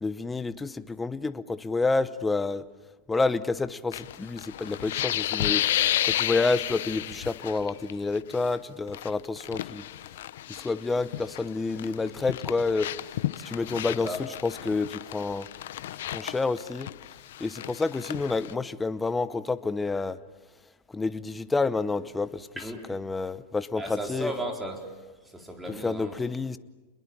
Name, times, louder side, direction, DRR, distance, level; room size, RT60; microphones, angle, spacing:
voice 1, 0.0-2.6 3.1-9.8 10.5-12.9 13.4-15.5 16.1-16.9 17.4-20.2 20.9-22.5 22.9-24.3 25.8-26.6, left 3 dB, 10° left, 14 dB, 0.9 m, -29 dB
sound 1, 3.9-7.9 8.2-8.5 8.9-11.5 11.8-18.5, left 13 dB, 75° left, 0.8 m, -32 dB
voice 2, 13.9-14.2 22.6-22.8 23.8-24.8 25.3-26.2, right 1 dB, 5° right, 3 dB, 4.2 m, -35 dB
29.0 x 21.5 x 8.7 m, 1.2 s
supercardioid pair, 145°, 0 cm